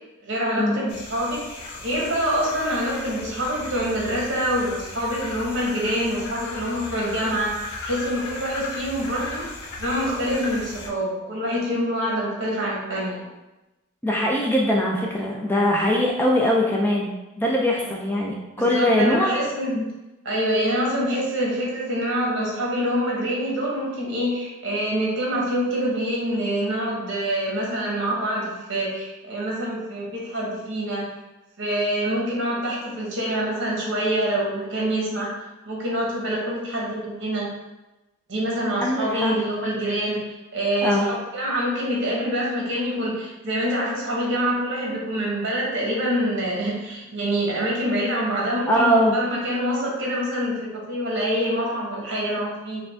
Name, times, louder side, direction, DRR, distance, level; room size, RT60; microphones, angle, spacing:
voice 1, 0.2-7.5 7.8-9.4 9.8-13.2 17.8-17.9 18.6-19.7 20.2-31.0 31.6-35.3 35.6-37.5 38.3-52.8, equal, 55° right, -4 dB, 1.2 m, -26 dB
sound 1, 0.9-10.9, left 2 dB, 85° left, 0.7 m, -36 dB
voice 2, 14.0-17.1 17.4-19.4 19.7-19.9 38.8-39.3 40.8-41.1 48.7-49.1, equal, 10° left, -2 dB, 0.3 m, -21 dB
4.9 x 2.3 x 3.4 m, 1.0 s
head